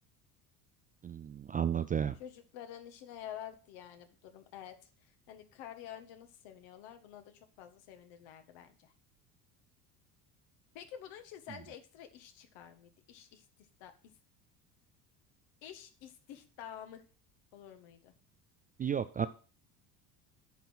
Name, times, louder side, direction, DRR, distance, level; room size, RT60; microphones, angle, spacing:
voice 1, 1.0-2.2 18.8-19.3, right 8 dB, 20° right, 11 dB, 0.3 m, -32 dB
voice 2, 2.2-4.8 5.0-8.9 10.7-13.4 13.8-13.9 15.6-17.0 17.5-18.1, left 10 dB, 60° left, 8 dB, 1.7 m, -49 dB
9.3 x 5.5 x 6.1 m, 0.37 s
hypercardioid pair, 70°, 48 cm